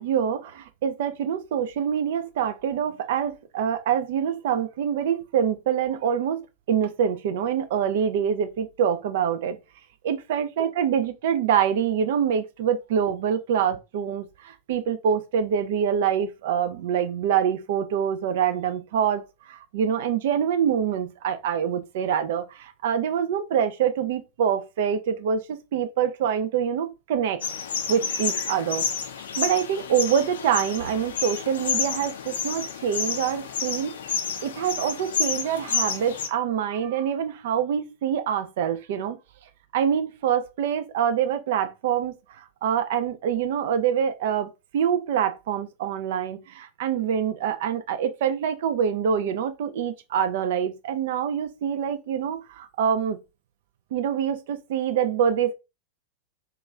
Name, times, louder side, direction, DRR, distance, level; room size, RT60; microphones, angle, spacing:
voice 1, 0.0-9.6 10.0-19.2 19.5-25.4 25.7-27.4 27.9-28.9 29.4-33.9 34.4-39.2 39.7-53.2 53.9-55.5, right 8 dB, 55° right, 0.4 m, -25 dB
sound 1, 27.4-36.3, left 6 dB, 65° left, 0.4 m, -30 dB
2.9 x 2.4 x 3.2 m
figure-of-eight pair, 90°, 0 cm